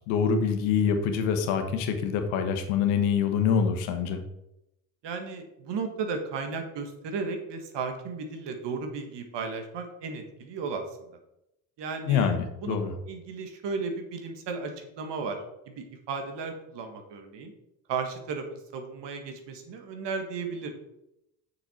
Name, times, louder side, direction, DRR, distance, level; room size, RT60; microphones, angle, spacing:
voice 1, 0.1-4.2 12.0-12.9, left 6 dB, 85° left, 6 dB, 1.2 m, -25 dB
voice 2, 5.0-10.8 11.8-12.3 12.6-12.8 13.1-15.4 15.7-17.5 17.9-20.7, right 4 dB, 65° right, 5 dB, 1.7 m, -34 dB
6.6 x 6.5 x 4.4 m, 0.85 s
supercardioid pair, 60°, 45 cm